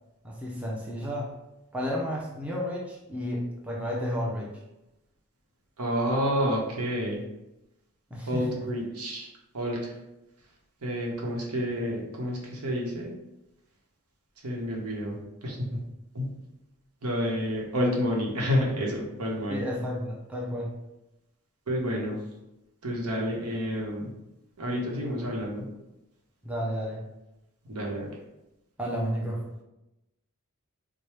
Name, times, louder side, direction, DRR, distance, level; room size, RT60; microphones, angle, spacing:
voice 1, 0.2-1.3 1.7-4.6 8.1-8.7 19.5-20.7 26.4-27.0 28.8-29.4, equal, 5° right, -3 dB, 0.5 m, -32 dB
voice 2, 5.8-7.2 8.3-9.3 9.5-9.9 10.8-13.1 14.4-15.8 16.1-16.3 17.0-19.6 21.7-22.2 22.8-24.1 24.6-25.6 27.7-28.1, equal, 85° right, -2 dB, 1.0 m, -29 dB
4.6 x 2.2 x 3.2 m, 0.94 s
head